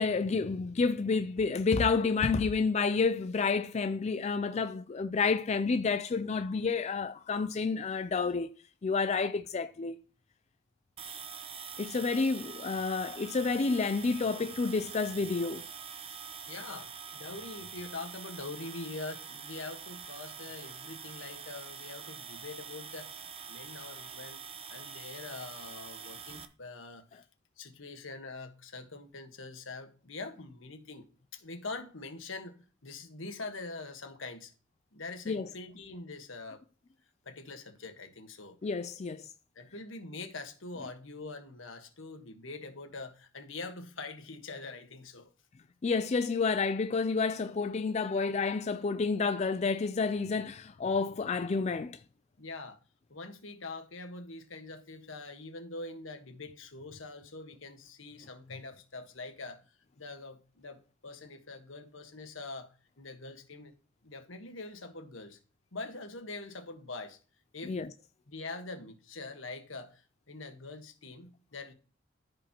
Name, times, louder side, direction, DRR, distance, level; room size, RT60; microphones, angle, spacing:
voice 1, 0.0-8.5 8.8-10.0 11.8-15.7 35.3-35.5 38.6-39.3 45.8-52.0 67.7-67.9, left 4 dB, 35° left, 0.4 m, -29 dB
sound 1, 11.0-26.4, right 6 dB, 30° right, 0.7 m, -45 dB
voice 2, 16.5-24.4 24.7-27.2 27.6-31.0 31.3-32.5 32.8-34.5 34.9-36.6 37.2-38.6 39.5-45.3 52.4-52.8 53.1-59.6 60.0-63.7 64.0-65.4 65.7-67.2 67.5-67.8 68.3-71.7, left 3 dB, 80° left, 1.4 m, -44 dB
14.0 x 5.1 x 3.0 m
head